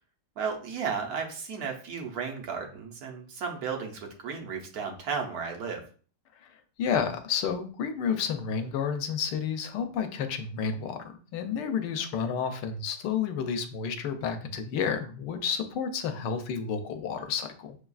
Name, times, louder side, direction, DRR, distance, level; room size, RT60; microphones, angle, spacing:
voice 1, 0.4-5.8, right 6 dB, 65° right, 2 dB, 1.2 m, -34 dB
voice 2, 6.8-17.8, left 7 dB, 90° left, 7 dB, 1.3 m, -30 dB
6.8 x 2.4 x 2.3 m, 0.41 s
omnidirectional pair, 1.9 m